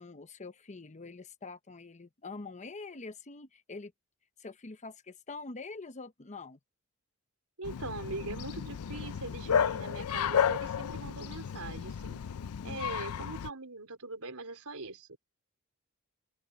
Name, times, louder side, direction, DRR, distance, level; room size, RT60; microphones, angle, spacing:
voice 1, 0.0-3.9 4.4-6.6 12.6-12.9, left 3 dB, 35° left, 0.9 m, -45 dB
Bark, 7.6-13.5, left 8 dB, 80° left, 0.4 m, -32 dB
voice 2, 7.6-12.2 12.6-15.2, right 3 dB, 80° right, 4.3 m, -41 dB
open air
head